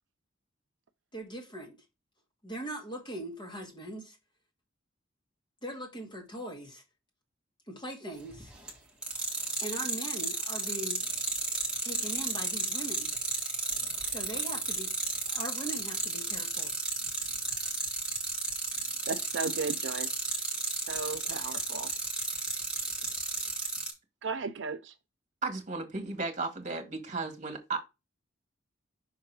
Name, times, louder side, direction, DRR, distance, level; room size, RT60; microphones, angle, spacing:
voice 1, 1.1-1.8 2.4-4.2 5.6-6.8 7.7-8.5 9.6-11.1 11.8-13.1 14.0-14.9 15.3-16.7, right 1 dB, 25° left, 1.9 m, -40 dB
sound 1, 8.3-8.7 9.0-23.9, right 3 dB, 5° right, 1.6 m, -32 dB
voice 2, 19.1-20.1 20.9-21.9 24.2-24.9, right 5 dB, 65° right, 0.5 m, -35 dB
voice 3, 25.4-27.8, right 3 dB, 40° right, 1.4 m, -34 dB
5.7 x 3.7 x 4.5 m
head